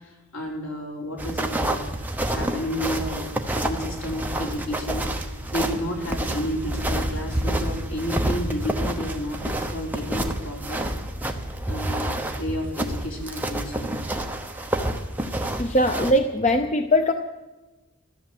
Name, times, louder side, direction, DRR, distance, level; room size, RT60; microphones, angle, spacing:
voice 1, 0.0-1.8 2.3-10.9 11.7-13.9, left 1 dB, 70° left, -1 dB, 4.4 m, -31 dB
sound 1, 1.2-16.1, right 1 dB, 10° right, 0.9 m, -28 dB
voice 2, 15.6-17.1, left 1 dB, 30° left, 7 dB, 0.7 m, -20 dB
14.0 x 13.5 x 7.8 m, 1.1 s
head